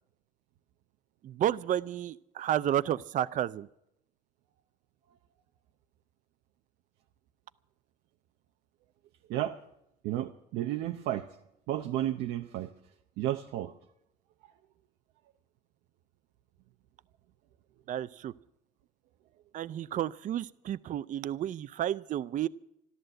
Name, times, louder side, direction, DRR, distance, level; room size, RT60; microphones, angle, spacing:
voice 1, 1.2-3.7 17.9-18.3 19.5-22.5, right 11 dB, 50° right, 16 dB, 0.5 m, -31 dB
voice 2, 10.0-11.3 11.7-12.7 13.2-13.7, right 13 dB, 90° right, 5 dB, 0.7 m, -32 dB
13.5 x 12.5 x 7.7 m, 0.79 s
cardioid pair, 110°, 17 cm